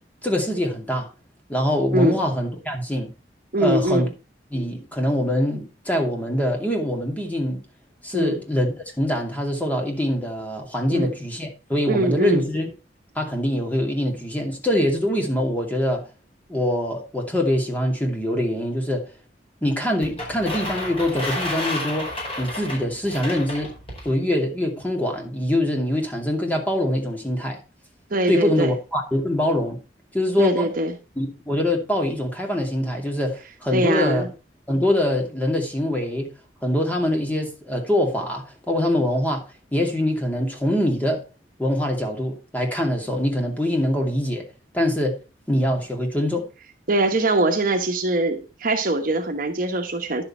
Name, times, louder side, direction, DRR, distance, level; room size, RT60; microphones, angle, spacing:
voice 1, 0.2-1.1 1.5-3.1 3.6-4.1 4.5-7.6 8.0-12.7 13.1-16.0 16.5-19.1 19.6-22.1 22.4-23.7 24.0-27.6 28.3-29.8 30.1-30.7 31.2-34.2 34.7-36.3 36.6-39.4 39.7-41.2 41.6-44.5 44.7-45.2 45.5-46.5, left 1 dB, 10° left, 2.6 m, -24 dB
voice 2, 3.5-4.1 8.1-8.4 10.9-11.1 11.9-12.4 28.1-28.7 30.4-30.9 33.7-34.3 46.9-50.2, right 2 dB, 50° right, 1.2 m, -22 dB
sound 1, 20.0-24.1, left 1 dB, 30° left, 4.8 m, -31 dB
11.0 x 6.8 x 4.3 m
head